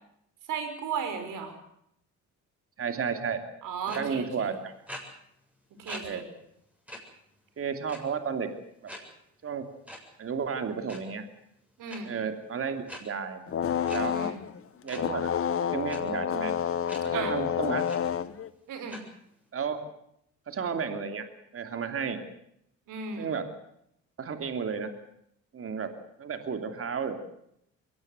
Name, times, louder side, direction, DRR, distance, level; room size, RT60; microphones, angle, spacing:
voice 1, 0.5-1.6 3.6-4.5 5.8-6.2 11.8-12.1 14.1-14.4 17.1-17.3 18.7-19.0 22.9-23.3, right 5 dB, 75° right, 8 dB, 5.5 m, -35 dB
voice 2, 2.8-3.4 3.9-4.7 6.0-6.2 7.6-8.5 8.8-8.9 9.4-9.7 10.2-11.2 12.0-13.4 13.8-14.2 14.8-15.3 15.6-16.5 17.0-17.9 19.5-19.8 20.5-21.2 21.5-22.2 23.2-23.5 24.2-24.9 25.5-25.9 26.2-27.2, right 6 dB, 45° right, 7 dB, 2.9 m, -32 dB
sound 1, 3.9-4.0 4.9-5.0 5.9-6.0 6.4-6.5 6.9-7.0 7.9-8.2 8.9-9.0 9.9-10.0 10.7-11.0 11.9-12.0 12.9-13.0 13.9-14.0 14.9-15.0 15.9-16.0 16.9-17.0 17.4-17.5 17.9-18.0 18.9-19.0, equal, 5° right, 7.2 m, -41 dB
sound 2, 13.5-14.6 14.9-18.5, left 8 dB, 45° left, 1.3 m, -29 dB
22.5 x 18.0 x 8.0 m, 0.75 s
cardioid pair, 95°, 31 cm